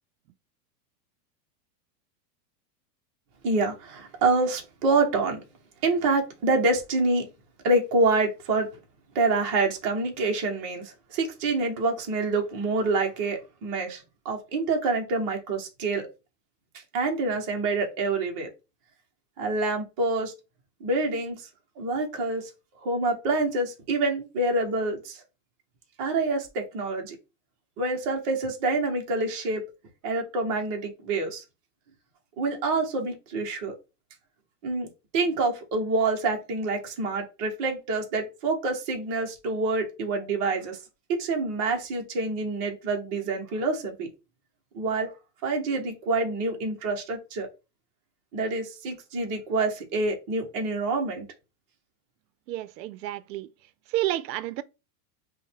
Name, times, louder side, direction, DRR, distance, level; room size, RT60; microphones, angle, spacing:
voice 1, 3.4-5.4 5.8-7.3 7.6-8.7 9.1-16.1 16.9-18.5 19.4-20.3 20.8-21.5 21.8-22.5 22.8-25.2 26.0-27.2 27.8-29.6 30.0-31.4 32.4-33.8 34.6-40.8 41.1-44.1 44.7-45.1 45.4-47.5 48.3-51.3, right 3 dB, 20° right, 0.6 m, -27 dB
voice 2, 52.5-53.5 53.9-54.6, right 15 dB, 90° right, 0.6 m, -30 dB
5.3 x 2.1 x 3.3 m
supercardioid pair, 175°, 49 cm